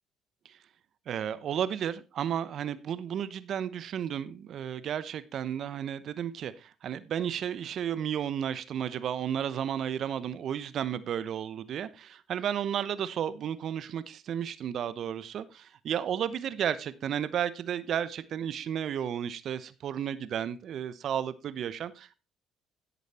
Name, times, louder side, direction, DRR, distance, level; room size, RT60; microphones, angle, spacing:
voice 1, 1.1-22.1, right 9 dB, 60° right, 0.9 m, -33 dB
11.0 x 8.2 x 4.2 m
supercardioid pair, 65°, 0 cm